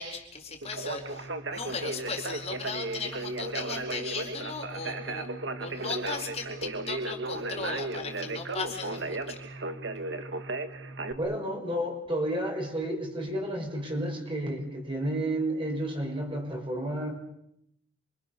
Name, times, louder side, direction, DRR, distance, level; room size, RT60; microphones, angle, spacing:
voice 1, 0.0-5.3 5.6-9.4, left 4 dB, 30° left, 1 dB, 4.4 m, -37 dB
Conversation, 0.6-11.1, right 2 dB, 55° right, 1.8 m, -35 dB
voice 2, 11.1-17.1, right 1 dB, 25° right, 1 dB, 6.1 m, -31 dB
29.5 x 25.0 x 6.9 m, 0.77 s
head